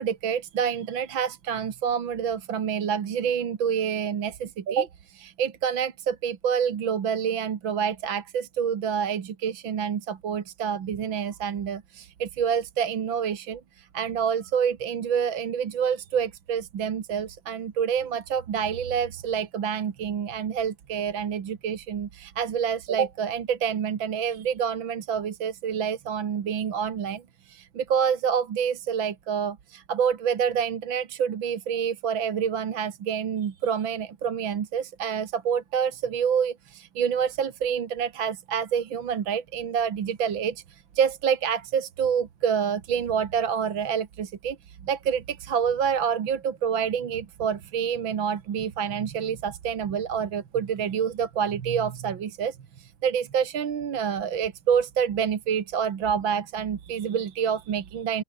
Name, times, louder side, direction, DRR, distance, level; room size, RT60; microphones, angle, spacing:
voice 1, 0.0-58.2, right 7 dB, 70° right, 2.4 m, -27 dB
open air
omnidirectional pair, 2.2 m